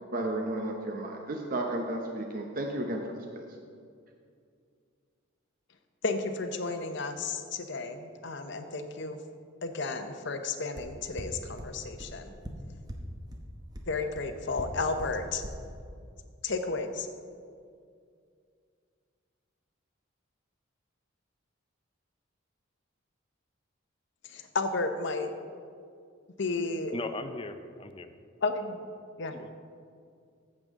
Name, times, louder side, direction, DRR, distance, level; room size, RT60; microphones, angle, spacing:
voice 1, 0.1-3.4, right 1 dB, 45° right, 2 dB, 0.8 m, -33 dB
voice 2, 6.0-9.2 9.6-12.3 13.9-15.4 16.4-17.1 24.3-25.3 26.4-27.0 28.4-28.8 29.2-29.4, left 3 dB, 60° left, 7 dB, 0.7 m, -32 dB
sound 1, 10.8-10.9 11.2-11.3 11.6-11.7 12.0-12.1 12.4-12.5 12.9-13.0 13.3-13.4 13.7-13.8 14.1-14.2 14.6-14.7 15.0-15.1 15.4-15.5, right 1 dB, 20° right, 0.9 m, -38 dB
voice 3, 26.9-28.1 29.3-29.6, left 3 dB, 25° left, 9 dB, 0.5 m, -38 dB
14.0 x 7.6 x 3.7 m, 2.3 s
head